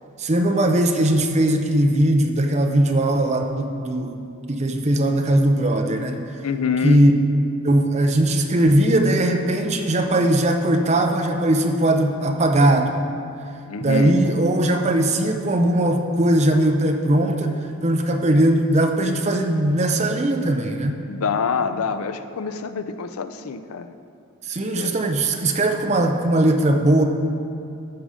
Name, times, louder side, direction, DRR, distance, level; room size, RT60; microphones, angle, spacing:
voice 1, 0.2-4.2 4.5-6.2 6.8-7.1 7.6-12.9 13.8-21.0 24.4-27.0, right 1 dB, 30° right, 4 dB, 0.6 m, -19 dB
voice 2, 6.4-7.0 13.7-14.2 21.1-23.9 24.8-24.9, left 5 dB, 75° left, 11 dB, 0.5 m, -26 dB
14.0 x 5.1 x 4.9 m, 2.6 s
head